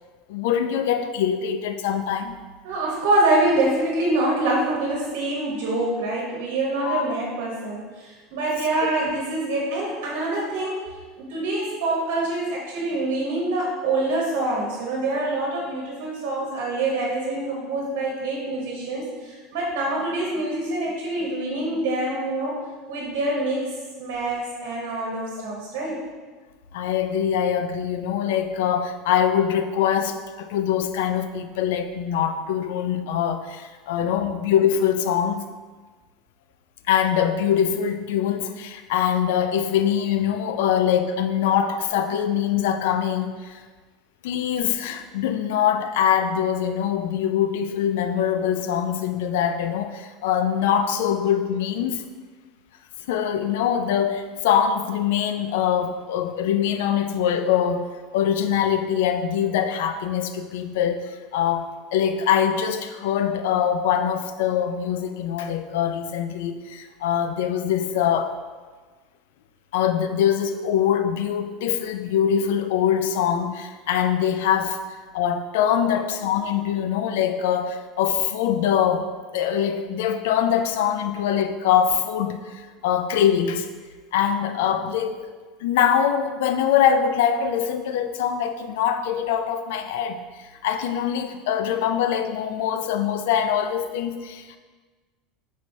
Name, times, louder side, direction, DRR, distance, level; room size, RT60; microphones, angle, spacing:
voice 1, 0.3-2.3 6.8-7.0 8.8-8.9 26.7-35.5 36.9-43.6 44.2-52.0 53.1-68.3 69.7-74.8 75.1-79.1 79.3-83.7 84.1-85.3 85.6-94.6, left 9 dB, 80° left, 9 dB, 0.3 m, -23 dB
voice 2, 2.6-10.8 11.2-22.5 22.9-23.6 24.0-26.0, right 2 dB, 75° right, -4 dB, 1.0 m, -25 dB
4.5 x 4.1 x 2.7 m, 1.4 s
supercardioid pair, 100°, 0 cm